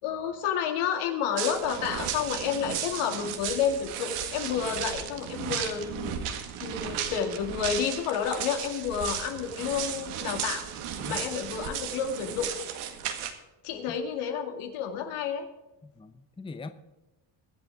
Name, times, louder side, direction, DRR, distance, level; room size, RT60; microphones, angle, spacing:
voice 1, 0.0-6.2 6.6-10.6 11.0-12.5 13.6-15.5, left 7 dB, 85° left, 4 dB, 2.5 m, -30 dB
sound 1, 1.4-13.3, right 9 dB, 80° right, 1.9 m, -35 dB
voice 2, 15.8-16.7, left 3 dB, 10° left, 9 dB, 0.7 m, -41 dB
22.5 x 7.9 x 3.6 m, 1.0 s
cardioid pair, 120°, 50 cm